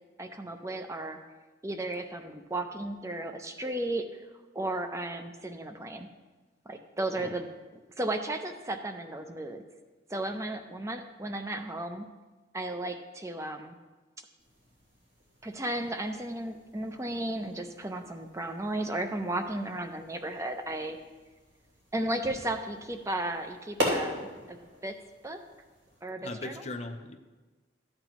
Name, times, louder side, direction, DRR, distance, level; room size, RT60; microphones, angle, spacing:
voice 1, 0.2-1.2 1.6-4.2 4.5-6.1 6.7-7.5 8.0-9.6 10.1-12.1 12.5-13.7 15.4-21.0 21.9-25.0 25.2-25.4 26.0-26.5, right 1 dB, 15° right, 7 dB, 0.6 m, -34 dB
sound 1, 14.4-26.0, equal, 75° right, 3.2 m, -40 dB
voice 2, 26.2-27.2, left 2 dB, 35° left, 6 dB, 0.6 m, -39 dB
13.5 x 8.8 x 3.0 m, 1.3 s
head